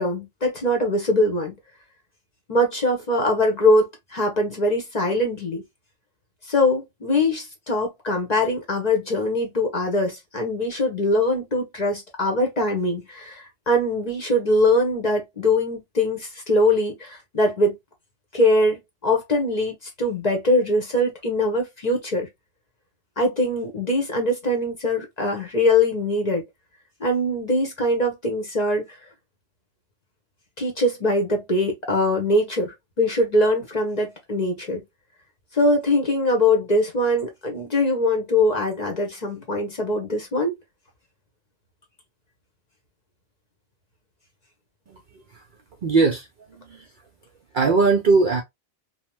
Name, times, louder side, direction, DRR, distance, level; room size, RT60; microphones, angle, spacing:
voice 1, 0.0-1.5 2.5-5.6 6.5-17.8 18.3-22.3 23.2-26.4 27.0-28.8 30.6-34.8 35.5-40.5, left 1 dB, 40° left, 0.8 m, -22 dB
voice 2, 45.8-46.9 47.5-48.4, right 4 dB, 55° right, 0.6 m, -20 dB
2.7 x 2.0 x 2.9 m
omnidirectional pair, 1.3 m